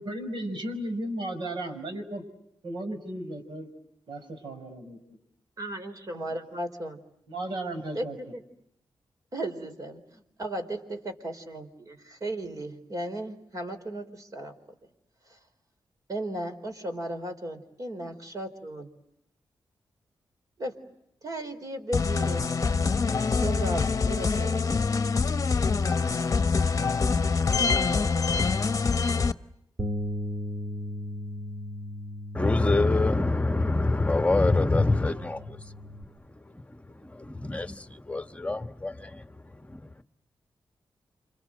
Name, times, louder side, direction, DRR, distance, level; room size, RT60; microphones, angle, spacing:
voice 1, 0.0-2.2 2.6-3.7 4.1-5.0 7.3-8.2, right 1 dB, 70° right, 6.1 m, -35 dB
voice 2, 5.6-7.0 7.9-8.0 8.3-8.4 9.3-14.5 16.1-18.9 20.6-20.8 21.2-22.5 23.3-24.8, right 1 dB, 45° right, 4.3 m, -35 dB
sound 1, 21.9-29.3, left 4 dB, 40° left, 1.0 m, -25 dB
Bass guitar, 29.8-36.0, left 1 dB, 25° right, 1.8 m, -37 dB
voice 3, 32.3-40.0, left 2 dB, 15° left, 1.3 m, -27 dB
29.5 x 26.0 x 7.8 m
cardioid pair, 90°, 8 cm